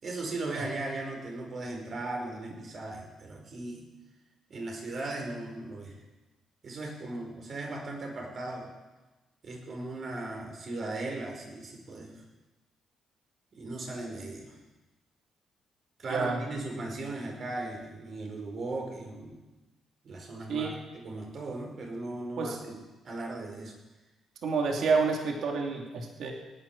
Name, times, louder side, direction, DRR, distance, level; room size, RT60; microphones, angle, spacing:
voice 1, 0.0-3.8 4.5-6.0 6.6-8.7 9.4-12.2 13.5-14.6 16.0-19.4 20.0-23.8, right 2 dB, 50° right, 1 dB, 4.9 m, -37 dB
voice 2, 16.1-16.4 20.5-20.7 22.4-22.6 24.4-26.3, right 4 dB, 65° right, 1 dB, 2.8 m, -28 dB
18.0 x 10.0 x 7.3 m, 1.1 s
cardioid pair, 90°, 0 cm